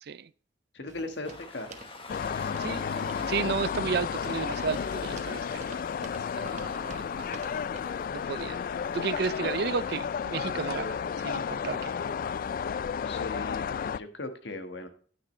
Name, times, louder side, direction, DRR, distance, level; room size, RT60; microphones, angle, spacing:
voice 1, 0.7-1.7 2.4-3.5 13.0-14.9, left 2 dB, 75° left, 1.5 m, -39 dB
sound 1, 0.9-8.0, right 3 dB, 40° right, 1.1 m, -49 dB
Train, 1.2-13.1, left 3 dB, 30° left, 1.3 m, -51 dB
sound 2, 2.1-14.0, left 7 dB, 50° left, 0.3 m, -32 dB
voice 2, 3.2-5.9 6.3-7.3 8.1-8.6 8.9-11.0 11.2-11.9, right 6 dB, 60° right, 0.4 m, -33 dB
9.9 x 9.6 x 3.2 m
head